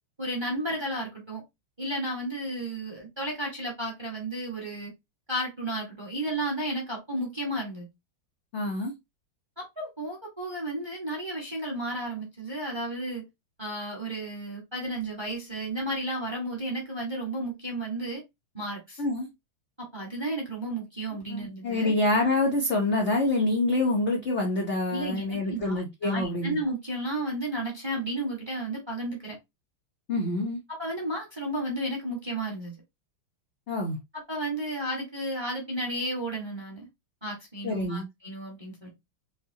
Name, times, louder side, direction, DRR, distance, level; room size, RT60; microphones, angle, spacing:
voice 1, 0.2-1.4 1.8-4.9 5.3-7.9 9.6-13.2 13.6-18.2 18.5-19.0 19.8-21.9 24.9-29.4 30.7-32.7 34.3-36.9 37.2-38.9, right 1 dB, 15° right, 0.9 m, -33 dB
voice 2, 8.5-8.9 19.0-19.3 21.3-26.6 30.1-30.6 33.7-34.0 37.6-38.1, left 2 dB, 65° left, 0.6 m, -26 dB
5.3 x 2.2 x 2.7 m
omnidirectional pair, 2.3 m